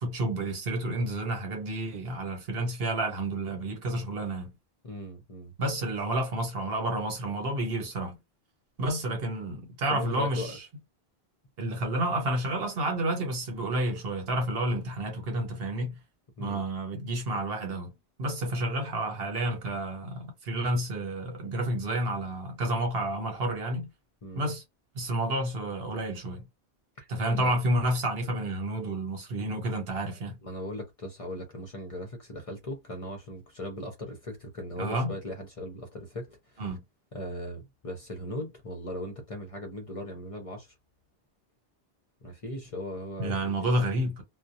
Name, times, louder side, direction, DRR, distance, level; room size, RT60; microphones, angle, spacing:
voice 1, 0.0-4.5 5.6-8.1 8.8-10.6 11.6-16.0 16.4-17.9 18.2-23.9 24.4-24.6 25.0-26.5 27.1-30.4 34.8-35.1 36.6-36.8 43.2-44.2, right 1 dB, 70° right, 1.1 m, -30 dB
voice 2, 4.8-5.5 9.9-10.6 16.4-16.7 24.2-24.5 27.0-27.6 30.3-36.7 37.1-40.7 42.2-43.9, left 1 dB, 40° left, 0.6 m, -39 dB
2.3 x 2.1 x 2.7 m
omnidirectional pair, 1.1 m